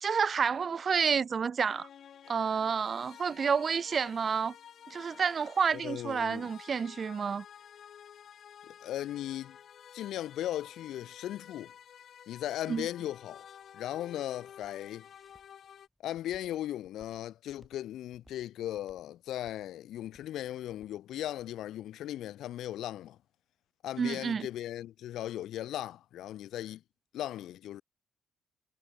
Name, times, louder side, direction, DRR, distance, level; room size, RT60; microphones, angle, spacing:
voice 1, 0.0-1.9 2.3-4.5 4.9-7.4 12.7-12.9 24.0-24.5, right 6 dB, 45° right, 0.4 m, -29 dB
sound 1, 1.7-15.9, left 9 dB, 60° left, 4.5 m, -52 dB
voice 2, 5.8-6.5 8.7-9.6 9.9-11.7 12.3-13.4 13.7-15.1 16.0-23.2 23.8-26.8 27.1-27.8, left 12 dB, 80° left, 0.7 m, -37 dB
Walk footsteps, 13.6-21.5, equal, ahead, 4.6 m, -65 dB
cardioid pair, 90°, 0 cm